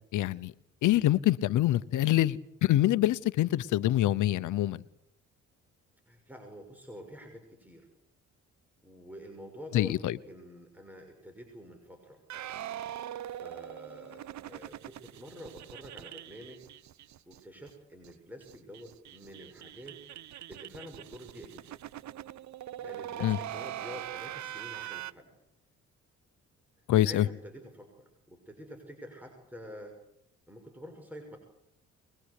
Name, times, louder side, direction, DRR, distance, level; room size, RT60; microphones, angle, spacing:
voice 1, 0.1-0.5 0.8-4.8 9.7-10.2 23.2-23.4 26.9-27.2, left 14 dB, 80° left, 16 dB, 0.9 m, -25 dB
voice 2, 6.1-7.9 8.8-12.2 13.2-16.6 17.3-20.0 20.5-21.6 22.8-25.3 26.9-30.0 30.5-31.4, equal, 5° right, 3 dB, 6.1 m, -48 dB
sound 1, 12.3-17.4 17.7-17.8 18.0-18.1 18.4-25.1, right 12 dB, 65° right, 0.9 m, -42 dB
23.0 x 22.5 x 8.3 m, 0.77 s
cardioid pair, 90°, 30 cm